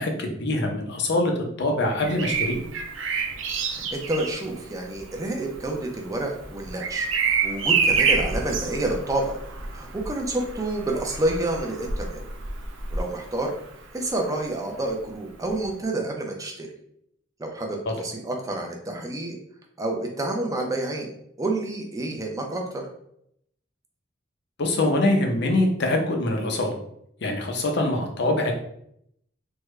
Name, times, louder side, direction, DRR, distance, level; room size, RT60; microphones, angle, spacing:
voice 1, 0.0-2.6 17.9-18.0 24.6-26.8 27.2-28.5, left 2 dB, 60° left, 2 dB, 0.6 m, -24 dB
Bird vocalization bird call bird song, 1.9-13.7 15.4-15.7, right 5 dB, 85° right, 0.5 m, -28 dB
voice 2, 3.7-9.3 9.7-12.2 12.9-13.5 13.9-16.7 17.4-19.4 19.8-21.1 21.4-22.9, right 2 dB, 20° right, 1 dB, 0.5 m, -29 dB
3.5 x 2.2 x 3.1 m, 0.72 s
head